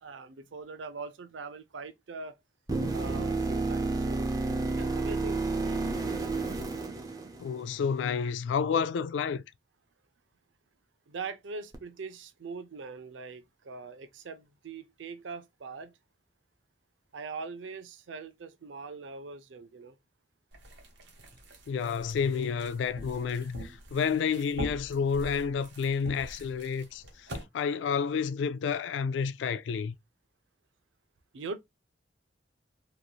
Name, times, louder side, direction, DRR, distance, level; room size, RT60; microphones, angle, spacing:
voice 1, 0.0-2.3 2.9-4.3 4.7-5.9 11.1-15.9 17.1-19.9 31.3-31.6, right 4 dB, 90° right, 0.5 m, -42 dB
sound 1, 2.7-7.8 11.7-11.8, right 3 dB, 20° right, 0.5 m, -31 dB
voice 2, 7.4-9.4 21.7-27.0 27.5-29.9, left 6 dB, 80° left, 0.3 m, -30 dB
sound 2, 20.5-27.4, right 1 dB, 75° right, 1.0 m, -44 dB
3.0 x 2.6 x 2.3 m
head